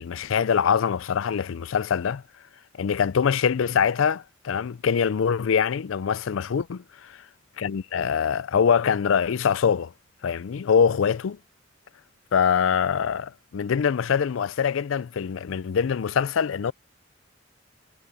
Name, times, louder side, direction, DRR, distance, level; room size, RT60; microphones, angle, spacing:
voice 1, 0.0-2.2 2.8-6.8 7.6-9.9 10.2-11.4 12.3-16.7, left 7 dB, 80° left, 0.4 m, -23 dB
head